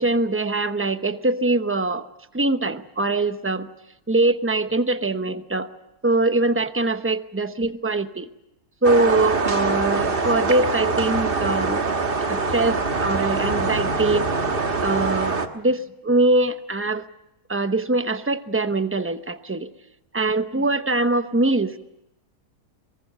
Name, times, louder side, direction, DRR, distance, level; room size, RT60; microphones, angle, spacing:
voice 1, 0.0-2.1 2.3-3.7 4.1-5.7 6.0-8.3 8.8-11.8 12.3-14.3 14.8-17.0 17.5-19.7 20.1-21.8, right 2 dB, 10° right, 10 dB, 0.6 m, -22 dB
sound 1, 8.8-15.5, right 3 dB, 35° right, 1.5 m, -24 dB
23.0 x 22.5 x 7.9 m, 0.89 s
omnidirectional pair, 1.7 m